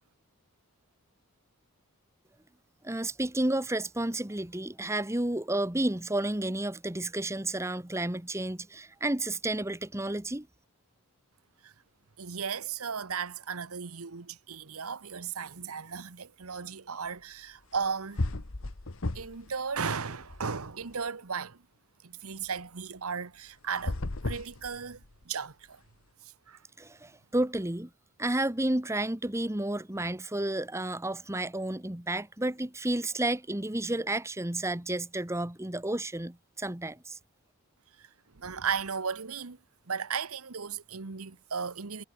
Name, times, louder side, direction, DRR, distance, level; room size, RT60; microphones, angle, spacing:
voice 1, 2.8-10.5 26.8-27.9 28.2-37.2, right 1 dB, 10° right, 1.1 m, -31 dB
voice 2, 12.2-18.3 19.1-21.6 22.0-25.0 25.2-25.8 26.5-26.6 38.0-38.1 38.3-39.6 39.9-42.0, right 6 dB, 75° right, 1.1 m, -35 dB
sound 1, 17.7-17.9 18.2-19.5 19.8-20.9 23.7-25.2, left 2 dB, 60° left, 1.3 m, -34 dB
head